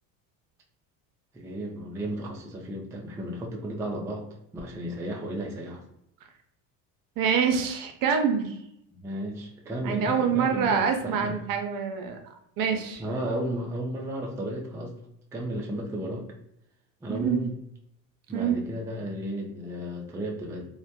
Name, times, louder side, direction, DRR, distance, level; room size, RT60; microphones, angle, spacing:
voice 1, 1.3-4.2 4.5-5.8 8.9-11.4 13.0-15.0 15.3-16.3 17.0-17.5 18.3-20.6, right 1 dB, 10° right, 0 dB, 0.3 m, -33 dB
voice 2, 7.2-8.6 9.8-13.0 17.1-17.4 18.3-18.6, right 6 dB, 55° right, 5 dB, 0.6 m, -26 dB
2.1 x 2.1 x 2.7 m, 0.77 s
supercardioid pair, 80°, 41 cm